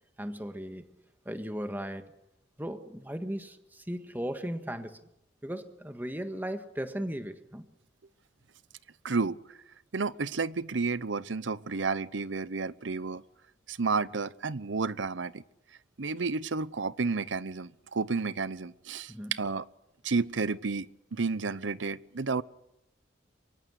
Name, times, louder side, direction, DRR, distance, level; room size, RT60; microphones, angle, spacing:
voice 1, 0.2-0.9 1.2-2.0 2.6-5.0 5.4-7.6 19.1-19.3, equal, 10° right, 1.6 m, -36 dB
voice 2, 9.0-9.4 9.9-13.2 13.7-15.4 16.0-19.7 20.0-22.4, right 4 dB, 80° right, 0.8 m, -31 dB
24.0 x 23.5 x 6.6 m
head